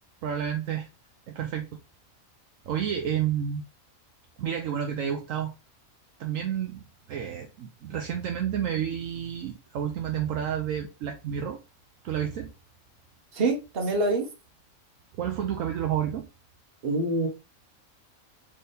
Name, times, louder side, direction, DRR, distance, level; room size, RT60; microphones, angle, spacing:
voice 1, 0.2-0.9 1.3-1.7 2.7-3.6 4.4-5.5 6.2-11.6 12.0-12.5 15.2-16.3, right 9 dB, 70° right, 1.0 m, -30 dB
voice 2, 13.3-14.3 16.8-17.3, right 2 dB, 45° right, 1.2 m, -25 dB
4.1 x 3.3 x 3.3 m
omnidirectional pair, 1.5 m